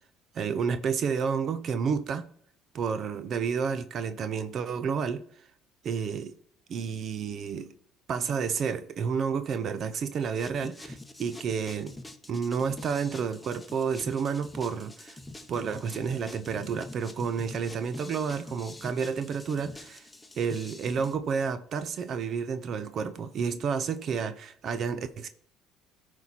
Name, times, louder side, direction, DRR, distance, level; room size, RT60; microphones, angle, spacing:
voice 1, 0.3-2.3 2.7-5.4 5.8-6.3 6.7-7.7 8.1-12.0 12.3-15.2 15.5-20.1 20.4-25.3, right 6 dB, 50° right, 0.6 m, -30 dB
sound 1, 10.3-21.2, left 2 dB, 10° left, 1.0 m, -45 dB
13.5 x 4.4 x 4.2 m
supercardioid pair, 90°, 0 cm